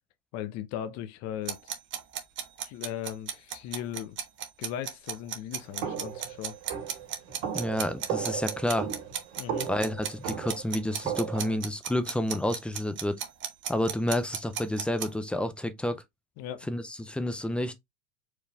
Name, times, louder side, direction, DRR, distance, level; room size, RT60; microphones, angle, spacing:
voice 1, 0.3-1.7 2.6-4.2 4.6-6.5 9.4-9.7 16.4-16.7, left 10 dB, 45° left, 0.7 m, -37 dB
sound 1, 1.5-15.1, right 9 dB, 30° right, 1.1 m, -35 dB
sound 2, 5.8-11.6, right 8 dB, 60° right, 2.4 m, -35 dB
voice 2, 7.5-8.9 9.6-13.2 13.7-16.0 16.7-17.7, left 1 dB, 5° left, 0.4 m, -30 dB
4.8 x 3.2 x 3.4 m
supercardioid pair, 125°, 38 cm